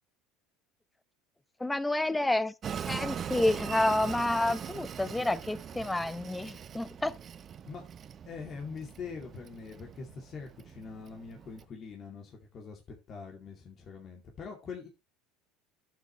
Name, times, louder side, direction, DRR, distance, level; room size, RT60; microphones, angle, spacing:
voice 1, 1.6-2.5 2.9-7.2, left 2 dB, 10° left, 0.8 m, -29 dB
Train, 2.6-11.6, right 8 dB, 40° right, 0.7 m, -41 dB
voice 2, 8.3-12.8 13.1-14.9, left 5 dB, 45° left, 2.4 m, -43 dB
11.5 x 7.8 x 3.1 m
supercardioid pair, 90°, 0 cm